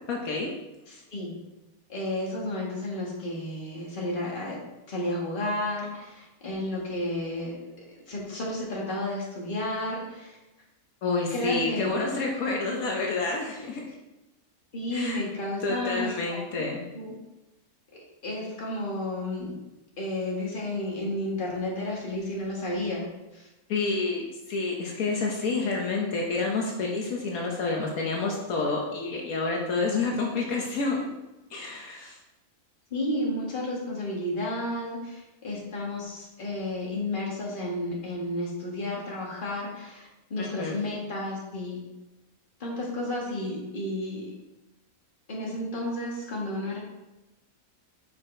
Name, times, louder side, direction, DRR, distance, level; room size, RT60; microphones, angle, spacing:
voice 1, 0.1-0.5 11.0-13.9 14.9-15.2 15.6-16.8 23.7-31.1 31.5-32.2 40.4-40.7, left 3 dB, 75° left, -1 dB, 1.3 m, -29 dB
voice 2, 0.9-1.4 1.9-4.6 4.9-10.4 11.3-11.9 14.7-16.6 16.9-17.1 18.2-19.5 20.0-23.1 23.3-23.5 32.9-41.8 42.6-44.3 45.3-46.8, left 1 dB, 35° left, -3 dB, 1.7 m, -32 dB
5.9 x 4.8 x 4.3 m, 1.0 s
omnidirectional pair, 1.5 m